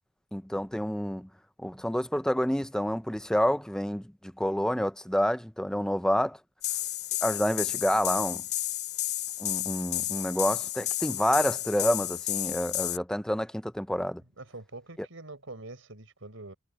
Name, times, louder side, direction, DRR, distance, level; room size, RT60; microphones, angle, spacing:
voice 1, 0.3-1.3 1.6-4.1 4.4-6.4 7.2-8.4 9.4-14.2 15.0-15.1, equal, 5° left, 0.6 m, -28 dB
sound 1, 6.6-13.0, left 14 dB, 50° left, 2.7 m, -32 dB
voice 2, 14.4-16.5, right 2 dB, 85° right, 4.5 m, -44 dB
head